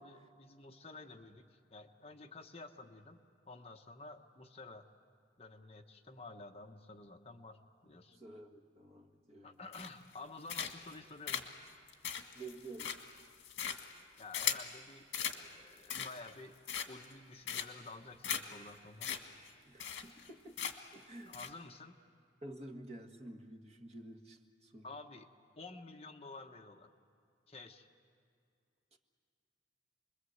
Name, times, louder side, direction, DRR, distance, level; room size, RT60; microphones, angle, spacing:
voice 1, 0.0-3.2 3.5-4.9 5.4-7.6 7.8-8.2 9.4-11.4 14.2-15.1 15.3-16.5 16.9-19.1 21.3-22.0 24.8-25.3 25.6-26.9 27.5-27.9, left 3 dB, 30° left, 4 dB, 1.1 m, -51 dB
voice 2, 8.1-9.6 12.3-12.9 19.7-20.6 20.9-21.4 22.4-24.9 28.9-29.0, right 2 dB, 35° right, 4 dB, 1.7 m, -50 dB
sound 1, 9.7-10.1 10.5-10.9 11.3-14.7 15.1-15.4 15.8-16.3 16.7-17.1 17.5-17.9 18.2-18.4 18.7-18.8 19.0-19.2 19.5-19.6 19.8-20.3 20.6-20.9 21.3-21.5, left 8 dB, 70° left, 1.9 m, -38 dB
29.0 x 22.0 x 8.0 m, 2.4 s
head